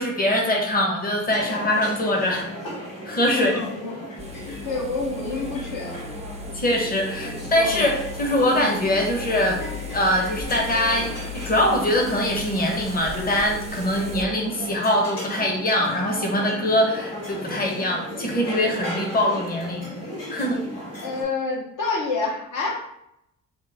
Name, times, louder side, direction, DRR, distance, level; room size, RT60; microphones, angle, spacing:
voice 1, 0.0-2.4 3.1-3.6 4.5-4.6 6.5-9.6 9.9-11.2 11.4-19.9 20.3-20.6, left 1 dB, 25° left, 0 dB, 0.8 m, -23 dB
sound 1, 1.3-21.2, equal, 85° left, 1.4 m, -35 dB
voice 2, 3.3-4.0 4.6-6.0 21.0-22.9, left 3 dB, 65° left, -1 dB, 0.8 m, -28 dB
sound 2, 4.2-14.2, left 3 dB, 20° right, 0.3 m, -37 dB
3.0 x 2.1 x 3.3 m, 0.80 s
supercardioid pair, 65°, 33 cm